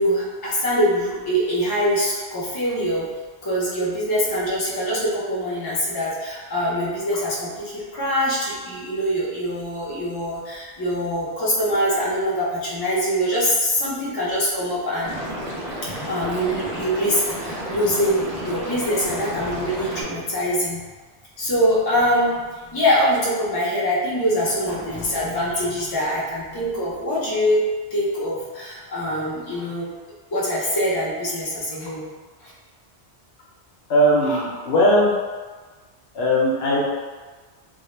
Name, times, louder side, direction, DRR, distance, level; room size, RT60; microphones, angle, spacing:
voice 1, 0.0-3.1 3.4-15.1 16.1-20.8 21.4-27.6 27.9-29.9 30.3-32.0 32.4-32.5, equal, 35° left, -7 dB, 0.4 m, -23 dB
Liquid, 15.0-20.0, equal, 45° right, 0.5 m, -31 dB
voice 2, 33.9-35.2 36.1-36.8, equal, 70° left, -4 dB, 0.8 m, -18 dB
2.1 x 2.0 x 3.0 m, 1.4 s
omnidirectional pair, 1.2 m